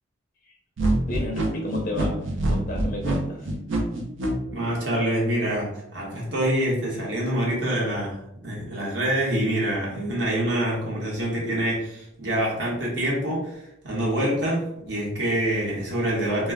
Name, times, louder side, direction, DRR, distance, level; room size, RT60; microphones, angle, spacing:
sound 1, 0.8-4.3, right 1 dB, 80° right, 0.6 m, -25 dB
voice 1, 1.1-3.5, left 1 dB, 40° left, 0 dB, 0.4 m, -32 dB
voice 2, 4.5-16.5, right 1 dB, 65° right, -5 dB, 1.0 m, -26 dB
2.2 x 2.1 x 3.5 m, 0.82 s
head